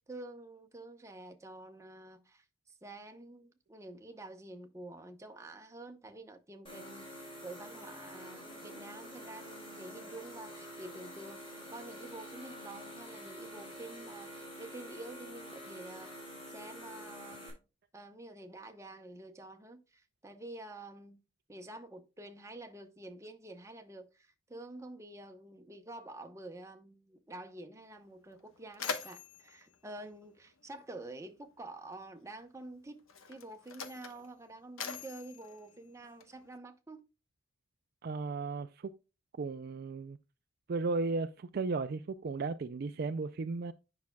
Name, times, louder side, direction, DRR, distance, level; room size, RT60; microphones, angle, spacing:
voice 1, 0.0-17.4 17.9-21.2 21.5-37.0, right 2 dB, 15° right, 0.9 m, -48 dB
sound 1, 6.7-17.5, equal, 25° left, 3.6 m, -47 dB
Mechanisms, 27.8-27.9 28.3-31.0 32.0-32.2 33.0-36.6, left 6 dB, 85° left, 1.1 m, -44 dB
voice 2, 38.0-38.9 39.4-40.2 40.7-43.7, right 3 dB, 45° right, 0.4 m, -35 dB
9.5 x 5.8 x 2.2 m
head